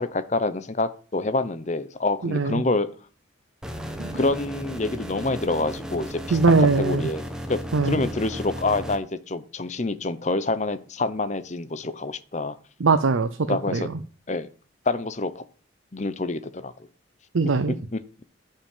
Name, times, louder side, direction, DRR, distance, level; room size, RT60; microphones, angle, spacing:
voice 1, 0.0-2.9 4.1-7.6 7.9-12.6 13.5-13.9 14.3-14.5 14.9-15.4 15.9-16.7 17.9-18.0, left 2 dB, 35° left, 13 dB, 0.8 m, -27 dB
voice 2, 2.2-2.6 4.0-4.2 6.3-7.1 7.7-8.0 12.8-13.8 17.3-17.7, right 4 dB, 90° right, 10 dB, 0.7 m, -21 dB
sound 1, 3.6-9.0, equal, 5° right, 1.1 m, -34 dB
10.5 x 5.5 x 7.3 m, 0.40 s
head